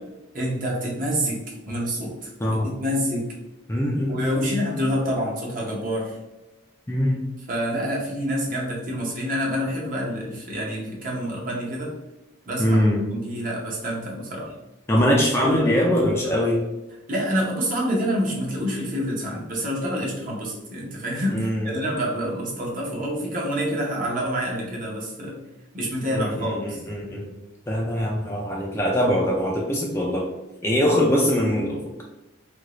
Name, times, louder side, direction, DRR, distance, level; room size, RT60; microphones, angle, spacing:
voice 1, 0.3-1.4 1.6-3.3 4.1-6.2 7.5-11.9 12.5-12.8 13.1-14.5 15.4-15.8 17.1-25.4 25.7-26.8, equal, 40° right, -2 dB, 0.7 m, -27 dB
voice 2, 3.7-4.6 6.9-7.2 12.6-13.1 14.9-16.6 21.3-21.8 26.1-27.3 27.7-30.3 30.6-32.0, equal, 10° left, -2 dB, 0.3 m, -22 dB
2.8 x 2.6 x 3.0 m, 1.0 s
head